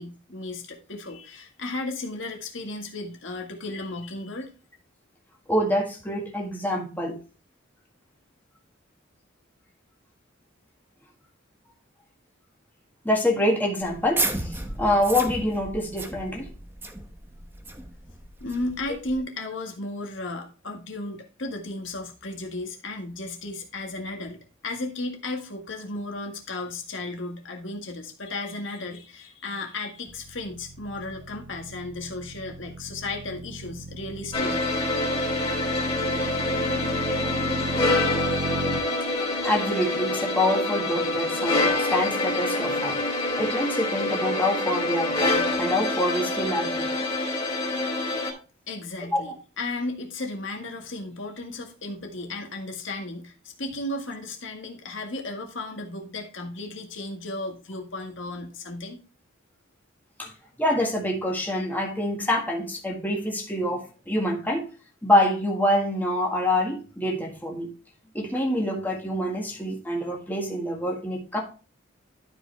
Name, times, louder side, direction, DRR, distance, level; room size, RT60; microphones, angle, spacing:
voice 1, 0.0-4.5 18.4-24.4 24.6-34.7 48.7-59.0, left 2 dB, 65° left, 1.8 m, -34 dB
voice 2, 5.5-7.1 13.0-16.5 39.4-43.0 43.4-46.9 49.1-49.2 60.2-60.3 60.6-64.6 65.0-67.7 68.1-71.4, left 1 dB, 10° left, 1.8 m, -26 dB
sound 1, 13.8-19.2, right 2 dB, 10° right, 0.9 m, -33 dB
sound 2, 30.1-38.8, right 2 dB, 60° right, 0.6 m, -36 dB
sound 3, 34.3-48.3, left 2 dB, 25° left, 3.5 m, -26 dB
12.0 x 5.0 x 3.4 m
head